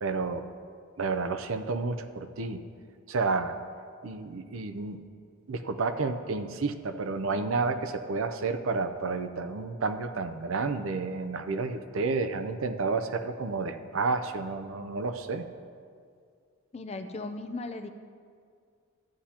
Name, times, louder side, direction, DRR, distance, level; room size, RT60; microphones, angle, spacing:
voice 1, 0.0-0.4 1.0-2.6 3.1-3.5 4.0-5.0 5.5-15.4, right 4 dB, 70° right, 9 dB, 0.6 m, -30 dB
voice 2, 16.7-17.9, left 2 dB, 30° left, 8 dB, 0.5 m, -37 dB
14.0 x 9.8 x 2.9 m, 2.2 s
head